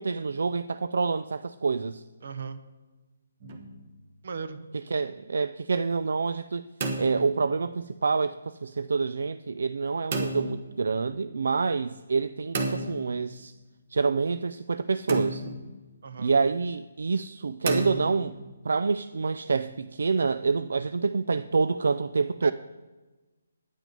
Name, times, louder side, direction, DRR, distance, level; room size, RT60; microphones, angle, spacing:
voice 1, 0.0-2.0 4.9-6.6 7.0-8.3 8.6-13.5 13.9-15.4 16.2-18.4 18.6-22.5, right 4 dB, 70° right, 13 dB, 0.4 m, -27 dB
voice 2, 2.2-2.6 4.2-4.6 16.0-16.3 22.4-22.5, right 5 dB, 50° right, 11 dB, 0.9 m, -37 dB
sound 1, 3.4-3.9 6.5-7.8 10.1-10.7 12.5-13.5 15.1-15.8 17.7-18.5, right 2 dB, 30° right, 1.2 m, -32 dB
9.3 x 9.2 x 5.3 m, 1.2 s
hypercardioid pair, 175°, 0 cm